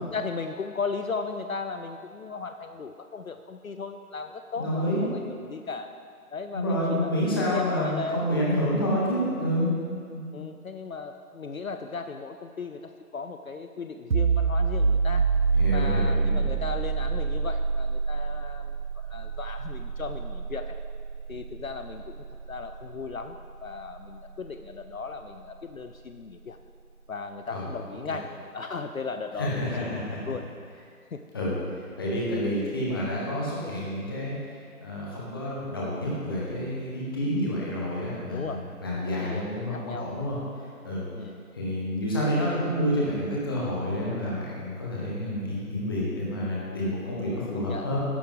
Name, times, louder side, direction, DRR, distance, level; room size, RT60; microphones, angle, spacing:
voice 1, 0.0-5.9 6.3-8.8 10.3-15.4 15.7-20.8 21.3-26.6 27.1-30.5 31.1-31.2 38.3-38.7 39.1-40.1 41.1-41.4 47.2-48.0, left 4 dB, 60° left, 7 dB, 0.7 m, -36 dB
voice 2, 4.6-5.0 6.5-9.7 10.1-10.3 15.5-16.5 27.5-27.6 29.4-30.2 31.3-31.5 32.0-34.3 34.8-40.4 40.8-41.0 41.5-48.0, equal, 15° left, -6 dB, 1.4 m, -28 dB
sound 1, 14.1-25.5, right 5 dB, 65° right, 0.9 m, -28 dB
13.0 x 11.0 x 3.8 m, 2.2 s
figure-of-eight pair, 160°, 46 cm